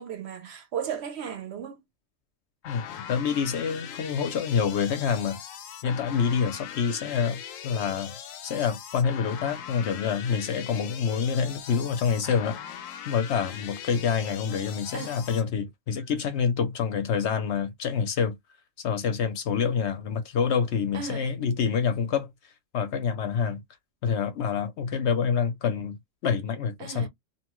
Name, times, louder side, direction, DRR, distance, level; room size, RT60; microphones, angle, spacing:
voice 1, 0.0-1.8 14.9-15.2 20.9-21.3 26.8-27.1, right 7 dB, 60° right, 0.8 m, -35 dB
sound 1, 2.6-15.4, left 9 dB, 90° left, 1.0 m, -41 dB
voice 2, 2.6-5.4 5.8-8.2 8.4-12.6 13.0-18.4 18.8-22.3 22.7-23.6 24.0-26.0 26.2-27.1, left 6 dB, 65° left, 0.9 m, -27 dB
2.8 x 2.2 x 3.0 m
omnidirectional pair, 1.3 m